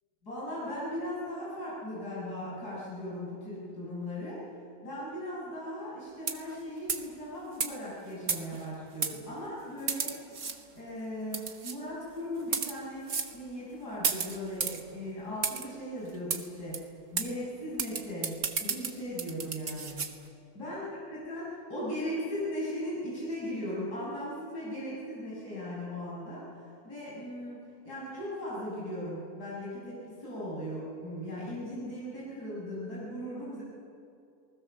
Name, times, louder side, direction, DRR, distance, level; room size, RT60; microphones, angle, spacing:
voice 1, 0.2-4.4 4.8-10.1 10.8-13.0 13.3-16.8 17.1-18.3 18.6-20.1 20.6-20.9 21.1-26.5 26.8-27.6 27.8-33.6, equal, 80° left, -8 dB, 7.2 m, -38 dB
sound 1, 6.2-6.6 6.9-7.1 7.6-7.7 8.3-8.6 9.0-9.1 9.9-10.6 11.3-11.8 12.4-12.7 13.1-13.3 14.0-14.8 15.4-15.7 16.3-16.4 16.7-16.8 17.2-17.3 17.8-20.1, right 5 dB, 50° right, 1.7 m, -32 dB
29.5 x 20.0 x 7.3 m, 2.5 s
omnidirectional pair, 1.7 m